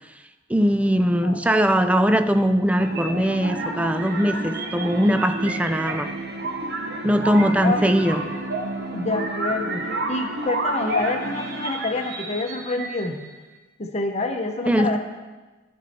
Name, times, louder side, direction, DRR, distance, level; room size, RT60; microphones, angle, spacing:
voice 1, 0.5-6.1 7.0-8.2 14.7-15.0, equal, 5° right, 9 dB, 0.4 m, -20 dB
sound 1, 2.8-13.4, right 2 dB, 55° right, 1.0 m, -30 dB
voice 2, 8.9-13.2 13.8-15.0, left 2 dB, 35° left, 4 dB, 0.8 m, -27 dB
12.0 x 5.5 x 4.3 m, 1.2 s
head